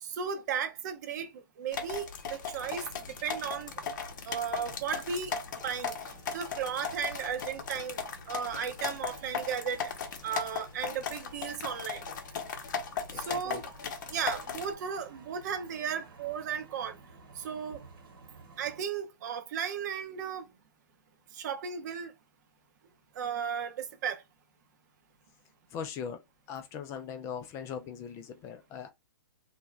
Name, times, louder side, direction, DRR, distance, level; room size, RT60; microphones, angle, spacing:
voice 1, 0.0-3.7 4.2-6.0 6.3-9.9 10.2-12.0 13.1-13.7 14.1-17.0 17.4-17.8 18.6-20.5 21.3-22.1 23.1-24.2, right 7 dB, 50° right, 0.7 m, -35 dB
sound 1, 1.7-14.7, left 6 dB, 55° left, 0.7 m, -37 dB
sound 2, 2.5-18.8, right 3 dB, 65° right, 1.3 m, -55 dB
voice 2, 13.1-13.6 25.7-26.2 26.5-28.9, left 7 dB, 25° left, 0.3 m, -40 dB
2.6 x 2.1 x 3.2 m
hypercardioid pair, 130°, 12 cm